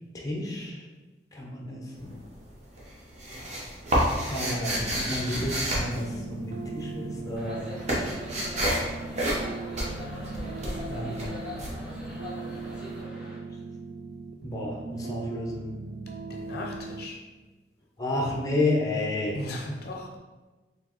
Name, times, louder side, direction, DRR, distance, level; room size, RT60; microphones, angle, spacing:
voice 1, 0.1-0.8 1.3-2.2 4.3-7.6 10.9-11.4 14.4-15.6 18.0-19.3, left 2 dB, 20° left, -2 dB, 0.7 m, -31 dB
sound 1, 1.9-2.5 2.8-6.8 7.1-12.7, equal, 40° right, 1.0 m, -29 dB
sound 2, 6.0-17.1, right 3 dB, 60° right, 0.4 m, -39 dB
sound 3, 7.4-13.4, left 1 dB, 5° right, 1.0 m, -42 dB
voice 2, 16.3-17.2 19.3-20.2, left 1 dB, 65° left, -1 dB, 0.6 m, -37 dB
4.3 x 3.2 x 3.0 m, 1.2 s
head